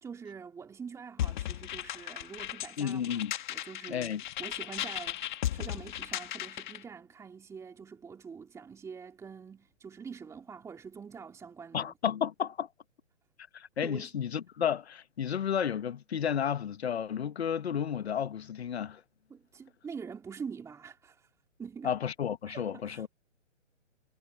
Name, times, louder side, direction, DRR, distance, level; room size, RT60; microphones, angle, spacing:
voice 1, 0.0-3.2 3.5-11.9 13.8-14.1 19.3-21.3 21.6-21.9 22.5-23.1, right 6 dB, 10° right, 2.9 m, -45 dB
sound 1, 1.2-6.8, left 12 dB, 40° left, 2.0 m, -36 dB
voice 2, 2.8-3.3 3.9-4.2 11.7-12.7 13.5-19.0 21.8-23.1, left 8 dB, 55° left, 1.3 m, -32 dB
figure-of-eight pair, 140°, 38 cm